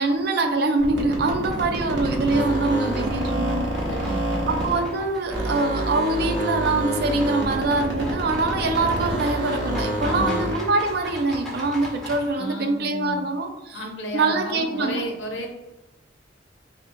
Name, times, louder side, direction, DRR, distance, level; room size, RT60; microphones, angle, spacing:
voice 1, 0.0-3.7 4.5-13.8 14.1-15.0, right 3 dB, 55° right, 6 dB, 0.4 m, -24 dB
sound 1, 0.8-5.0 5.3-10.7, right 1 dB, 75° right, 0.8 m, -27 dB
sound 2, 1.1-12.3, left 1 dB, ahead, 0.7 m, -40 dB
voice 2, 2.7-3.5 3.9-4.7 10.0-10.4 12.3-13.2 13.7-15.5, equal, 75° left, 2 dB, 0.7 m, -33 dB
3.2 x 2.8 x 2.6 m, 0.97 s
head